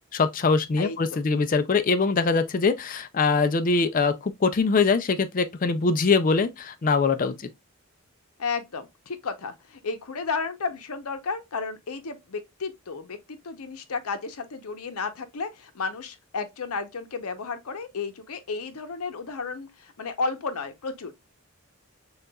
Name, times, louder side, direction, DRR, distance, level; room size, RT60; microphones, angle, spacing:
voice 1, 0.1-7.3, left 4 dB, 40° left, 0.4 m, -23 dB
voice 2, 0.8-1.2 7.2-7.4 8.4-21.1, left 4 dB, 90° left, 0.7 m, -33 dB
6.5 x 2.4 x 2.2 m
head